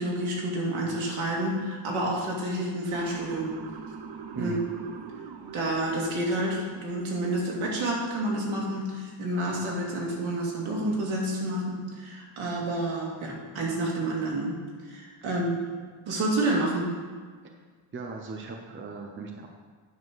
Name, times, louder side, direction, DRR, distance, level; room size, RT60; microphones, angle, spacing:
voice 1, 0.0-3.5 4.3-4.6 5.5-14.6 14.8-15.6 16.1-16.9, right 1 dB, 75° right, -3 dB, 2.5 m, -29 dB
Motor vehicle (road) / Siren, 2.9-7.1, right 6 dB, 55° right, 0.9 m, -43 dB
voice 2, 17.9-19.5, right 4 dB, 25° right, 2 dB, 0.7 m, -37 dB
9.6 x 4.4 x 6.2 m, 1.5 s
cardioid pair, 140°, 49 cm